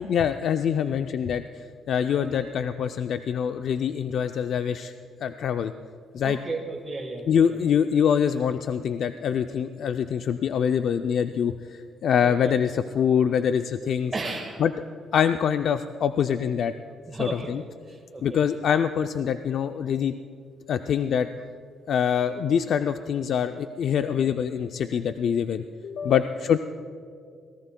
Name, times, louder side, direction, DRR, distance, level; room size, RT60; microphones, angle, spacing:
voice 1, 0.0-1.4 1.9-4.9 5.2-5.7 6.1-6.4 7.3-14.1 14.6-14.7 15.1-16.7 17.2-17.6 18.2-20.1 20.7-21.3 21.9-26.6, left 8 dB, 65° left, 8 dB, 0.4 m, -24 dB
voice 2, 6.2-7.6 12.2-12.5 14.1-14.6 17.1-17.5 17.9-18.2 26.0-26.2, right 3 dB, 20° right, -1 dB, 1.6 m, -34 dB
26.0 x 18.0 x 2.2 m, 2.2 s
cardioid pair, 90°, 0 cm